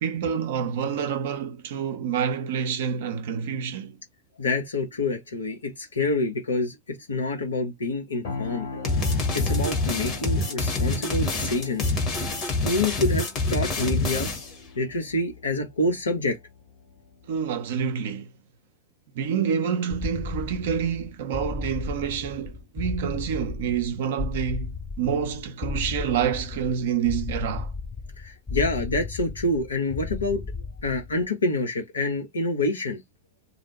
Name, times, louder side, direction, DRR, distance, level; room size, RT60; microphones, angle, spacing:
voice 1, 0.0-4.0 17.3-18.3 19.1-27.7, right 7 dB, 55° right, 0.5 m, -28 dB
voice 2, 4.4-9.0 9.3-11.9 12.6-14.3 14.8-16.4 28.2-33.0, left 2 dB, 75° left, 0.9 m, -27 dB
sound 1, 8.2-18.0, left 3 dB, 50° left, 1.5 m, -42 dB
sound 2, 8.8-14.6, left 2 dB, 30° left, 1.2 m, -26 dB
sound 3, 19.9-31.3, left 4 dB, 15° left, 0.3 m, -34 dB
2.6 x 2.0 x 3.1 m
figure-of-eight pair, 90°, 0 cm